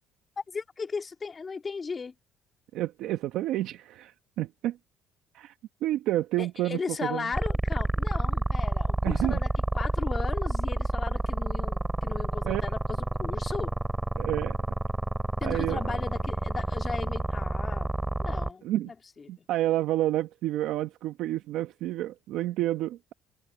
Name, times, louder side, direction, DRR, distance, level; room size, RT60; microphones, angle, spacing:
voice 1, 0.4-2.1 6.4-9.5 9.7-13.7 15.4-17.9 18.2-19.0 19.2-19.5, left 5 dB, 30° left, 2.1 m, -36 dB
voice 2, 2.7-4.8 5.3-5.5 5.8-7.3 9.0-9.4 12.4-12.6 14.2-14.5 15.4-16.0 18.6-18.9 19.3-23.1, right 14 dB, 75° right, 1.0 m, -29 dB
sound 1, 7.3-18.5, right 2 dB, 15° right, 3.6 m, -29 dB
supercardioid pair, 85°, 0 cm